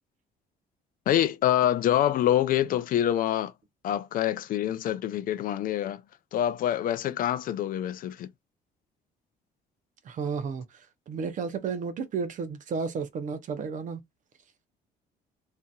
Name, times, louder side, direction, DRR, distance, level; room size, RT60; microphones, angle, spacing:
voice 1, 1.1-3.5 3.8-6.0 6.3-8.3, left 11 dB, 55° left, 0.4 m, -26 dB
voice 2, 10.0-10.7 11.1-14.0, right 5 dB, 50° right, 0.7 m, -32 dB
2.8 x 2.6 x 2.3 m
cardioid pair, 110°, 17 cm